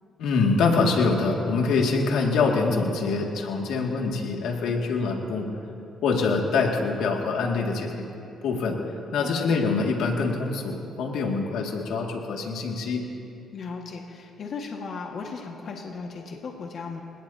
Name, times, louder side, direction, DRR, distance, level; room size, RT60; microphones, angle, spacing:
voice 1, 0.2-5.5 6.0-8.0 8.4-8.8 9.1-13.0, left 4 dB, 85° left, 0 dB, 2.2 m, -24 dB
voice 2, 9.2-9.6 13.5-17.0, left 4 dB, 60° left, 0 dB, 1.7 m, -36 dB
28.5 x 18.0 x 2.8 m, 2.7 s
cardioid pair, 90°, 0 cm